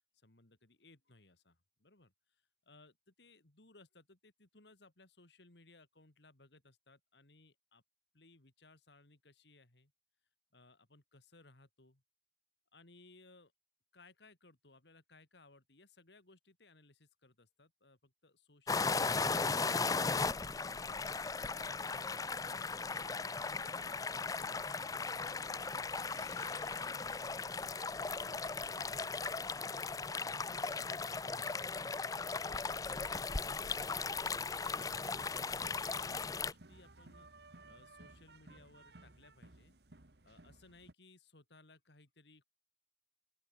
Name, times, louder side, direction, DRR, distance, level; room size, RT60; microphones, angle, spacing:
voice 1, 0.1-2.1 2.7-7.8 8.1-9.9 10.5-12.0 12.7-13.5 13.9-21.0 22.3-23.1 23.5-29.8 30.2-31.7 32.4-37.3 37.7-39.8 40.3-42.4, left 2 dB, 80° left, 2.7 m, -63 dB
sound 1, 18.7-36.5, left 4 dB, 20° left, 0.5 m, -37 dB
sound 2, 21.3-27.9, left 5 dB, 40° left, 5.3 m, -63 dB
sound 3, 35.1-40.9, right 2 dB, 70° right, 1.7 m, -58 dB
open air
head